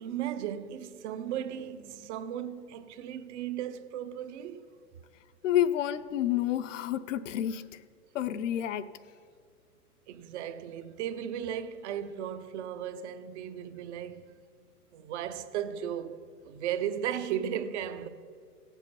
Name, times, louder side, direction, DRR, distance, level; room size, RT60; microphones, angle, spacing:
voice 1, 0.0-4.7 10.1-14.3 14.9-16.2 16.4-18.1, right 9 dB, 45° right, 0.9 m, -36 dB
voice 2, 5.4-7.8 8.1-8.9, left 11 dB, 50° left, 0.7 m, -29 dB
17.0 x 7.4 x 5.5 m
hypercardioid pair, 125°, 47 cm